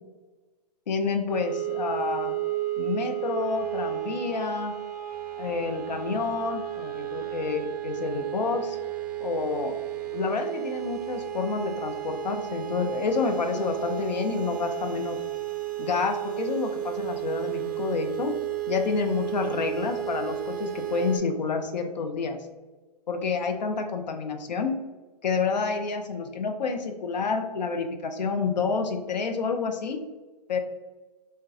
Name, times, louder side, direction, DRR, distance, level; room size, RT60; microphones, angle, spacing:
voice 1, 0.9-2.3 2.8-4.8 5.4-8.8 9.2-9.8 10.1-15.2 15.8-18.4 18.7-22.5 23.1-24.8 25.2-30.0 30.5-30.6, left 4 dB, 85° left, 5 dB, 0.6 m, -29 dB
sound 1, 1.3-21.2, right 14 dB, 65° right, 0.5 m, -33 dB
4.0 x 2.2 x 2.3 m, 1.2 s
hypercardioid pair, 140°, 21 cm